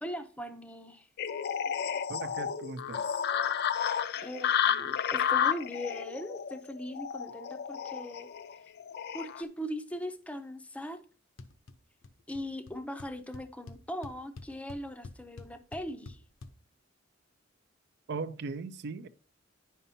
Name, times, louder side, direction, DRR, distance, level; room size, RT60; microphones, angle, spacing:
voice 1, 0.0-1.1 4.2-8.3 9.1-11.0 12.3-16.2, equal, 5° left, 0.5 m, -40 dB
sound 1, 1.2-9.4, left 8 dB, 55° left, 0.4 m, -31 dB
voice 2, 2.1-3.1 18.1-19.1, right 4 dB, 60° right, 0.4 m, -38 dB
sound 2, 11.4-11.8 12.0-12.4 12.7-12.8 13.0-16.5, left 3 dB, 85° left, 0.7 m, -46 dB
9.8 x 5.5 x 2.7 m
head